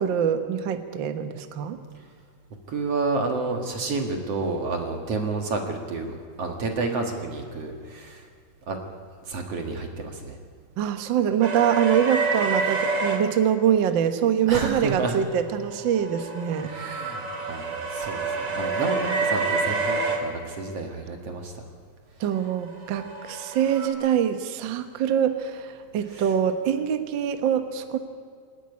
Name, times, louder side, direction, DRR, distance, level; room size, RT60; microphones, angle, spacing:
voice 1, 0.0-1.8 10.8-16.7 22.2-28.0, right 9 dB, 75° right, 8 dB, 1.0 m, -24 dB
voice 2, 2.7-8.3 8.7-8.8 9.3-10.4 14.5-15.2 16.6-21.5 26.1-26.3, right 3 dB, 50° right, 3 dB, 2.5 m, -30 dB
sound 1, 11.4-13.2 15.6-20.2 22.6-23.9, right 3 dB, 35° right, 2.8 m, -27 dB
27.5 x 11.0 x 9.8 m, 2.2 s
omnidirectional pair, 4.1 m